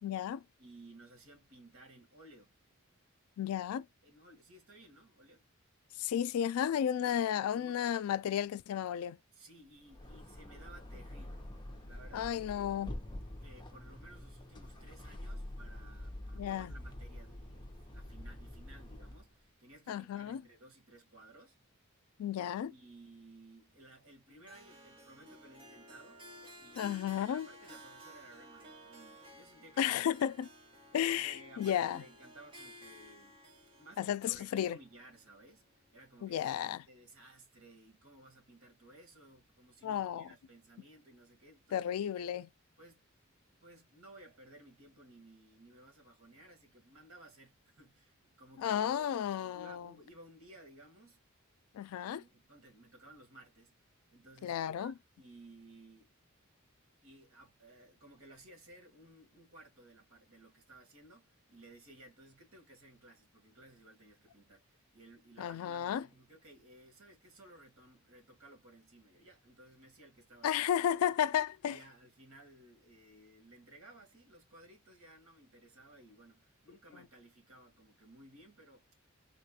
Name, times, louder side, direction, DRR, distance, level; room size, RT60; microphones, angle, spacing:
voice 1, 0.0-0.4 3.4-3.9 6.0-9.2 12.1-12.9 16.4-16.7 19.9-20.4 22.2-22.7 26.8-27.5 29.8-30.5 30.9-32.0 34.0-34.8 36.2-36.8 39.8-40.3 41.7-42.5 48.6-49.9 51.7-52.2 54.4-54.9 65.4-66.0 70.4-71.8, left 9 dB, 90° left, 0.3 m, -33 dB
voice 2, 0.6-2.5 4.0-5.4 7.0-7.3 7.5-7.8 9.3-11.5 11.8-12.8 13.3-21.6 22.7-26.3 26.6-30.0 31.1-33.4 33.8-35.7 35.9-36.5 36.9-42.1 42.8-43.0 43.5-49.1 49.5-51.2 52.0-53.8 54.1-56.1 57.0-71.2 71.7-78.9, right 1 dB, 70° right, 1.7 m, -57 dB
sound 1, 9.8-19.3, left 1 dB, 20° left, 0.7 m, -46 dB
Harp, 24.5-35.7, equal, 25° right, 1.2 m, -55 dB
3.8 x 2.4 x 2.7 m
head